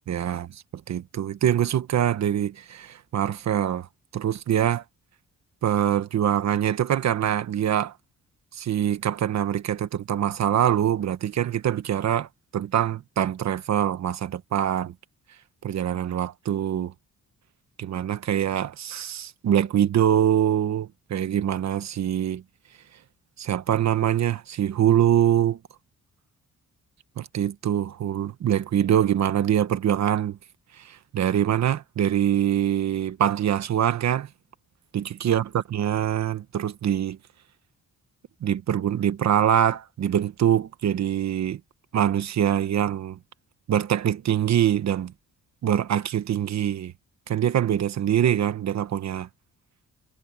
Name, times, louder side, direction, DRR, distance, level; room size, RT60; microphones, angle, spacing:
voice 1, 0.1-3.9 4.1-4.8 5.6-7.9 8.5-14.9 15.6-16.9 17.8-22.4 23.4-25.6 27.2-30.4 30.8-34.3 34.9-37.2 38.4-41.6 41.9-43.2 43.7-45.1 45.6-46.9 47.3-49.3, right 10 dB, 55° right, 1.2 m, -24 dB
wide cardioid pair, 175°, 32 cm